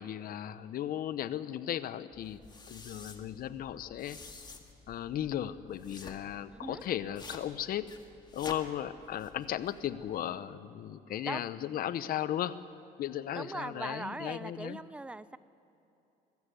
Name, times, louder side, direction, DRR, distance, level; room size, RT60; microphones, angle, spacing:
voice 1, 0.0-2.4 2.7-4.2 4.9-7.9 8.3-12.5 13.0-14.8, left 11 dB, 60° left, 14 dB, 0.8 m, -36 dB
sound 1, 2.1-10.2, left 4 dB, 25° left, 1.9 m, -50 dB
voice 2, 6.5-6.8 11.2-11.5 13.3-15.4, right 2 dB, 5° right, 16 dB, 0.5 m, -40 dB
22.5 x 13.5 x 9.4 m, 2.9 s
cardioid pair, 110°, 17 cm